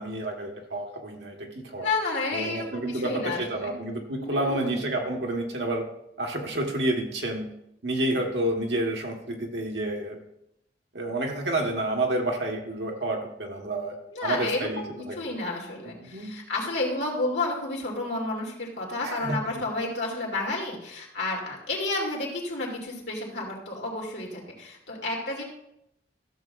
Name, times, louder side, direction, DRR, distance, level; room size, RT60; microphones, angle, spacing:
voice 1, 0.0-1.9 2.3-5.8 6.2-7.5 7.8-10.2 10.9-15.2 15.8-16.3 19.0-19.4, right 1 dB, 70° right, 1 dB, 1.5 m, -29 dB
voice 2, 1.8-3.7 4.2-4.8 14.1-25.4, left 2 dB, 75° left, -3 dB, 2.6 m, -31 dB
14.0 x 7.2 x 2.6 m, 0.80 s
head